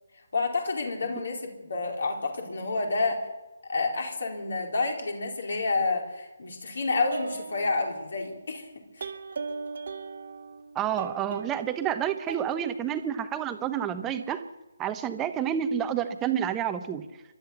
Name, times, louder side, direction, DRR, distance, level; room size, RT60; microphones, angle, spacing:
voice 1, 0.3-3.3 3.7-8.7 9.0-9.1, left 3 dB, 55° left, 2 dB, 4.3 m, -29 dB
sound 1, 7.1-8.4 9.0-11.9 12.3-12.6, right 4 dB, 50° right, 1.8 m, -38 dB
voice 2, 10.7-14.4 14.8-17.1, right 9 dB, 15° right, 9 dB, 1.0 m, -29 dB
29.0 x 13.0 x 7.0 m, 1.1 s
figure-of-eight pair, 145°, 0 cm